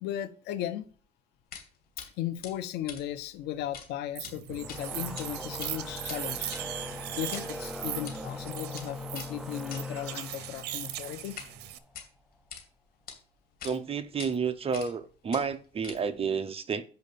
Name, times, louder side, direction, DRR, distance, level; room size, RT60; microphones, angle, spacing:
voice 1, 0.0-0.9 2.2-6.5 7.2-11.4, left 12 dB, 85° left, 1.0 m, -36 dB
sound 1, 1.5-1.7 2.0-2.1 2.4-3.9 4.1-4.3 4.7-5.3 5.5-11.5 11.8-12.6 13.1-13.2 13.6-13.8 14.2-14.3 14.7-15.0 15.3-16.2, left 7 dB, 60° left, 2.4 m, -45 dB
sound 2, 4.2-11.8, right 12 dB, 80° right, 0.8 m, -39 dB
sound 3, 4.4-11.8, left 1 dB, 5° right, 0.9 m, -41 dB
voice 2, 13.6-16.8, right 6 dB, 35° right, 0.9 m, -30 dB
6.9 x 5.3 x 6.9 m
cardioid pair, 110°, 17 cm